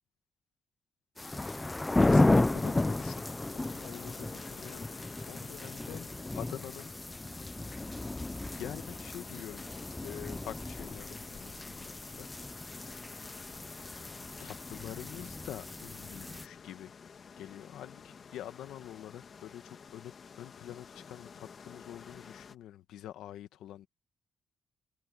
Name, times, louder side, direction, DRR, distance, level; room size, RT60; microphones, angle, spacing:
voice 1, 1.2-3.2 3.5-4.9 5.3-6.9 8.5-9.6 10.0-12.3 14.4-16.9 17.4-23.9, left 12 dB, 85° left, 1.6 m, -46 dB
sound 1, 1.2-16.5, left 2 dB, 20° left, 0.8 m, -33 dB
sound 2, 2.6-22.6, left 6 dB, 55° left, 2.5 m, -51 dB
supercardioid pair, 65°, 0 cm